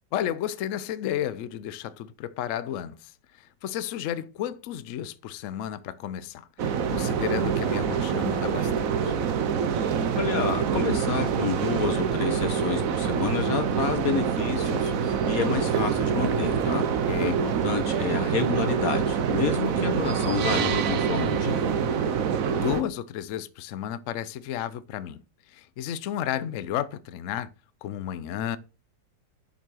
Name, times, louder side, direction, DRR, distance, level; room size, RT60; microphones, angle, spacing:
voice 1, 0.1-3.1 3.4-9.1 17.1-17.4 22.5-25.2 25.5-27.5 27.8-28.6, left 11 dB, 70° left, 0.7 m, -32 dB
sound 1, 6.6-22.8, right 7 dB, 55° right, 1.1 m, -26 dB
voice 2, 10.2-16.8 17.2-21.6, left 5 dB, 55° left, 1.7 m, -29 dB
7.1 x 6.0 x 6.2 m
omnidirectional pair, 1.9 m